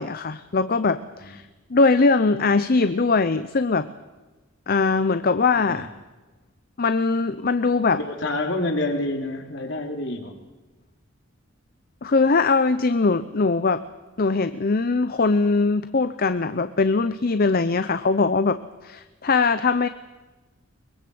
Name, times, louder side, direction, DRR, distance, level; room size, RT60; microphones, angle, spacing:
voice 1, 0.0-1.4 1.7-3.9 4.7-5.9 6.8-8.0 12.0-13.8 14.2-19.9, left 4 dB, 50° left, 12 dB, 0.7 m, -21 dB
voice 2, 8.0-10.3, left 2 dB, 65° left, 3 dB, 3.2 m, -28 dB
22.5 x 21.0 x 7.8 m, 1.2 s
head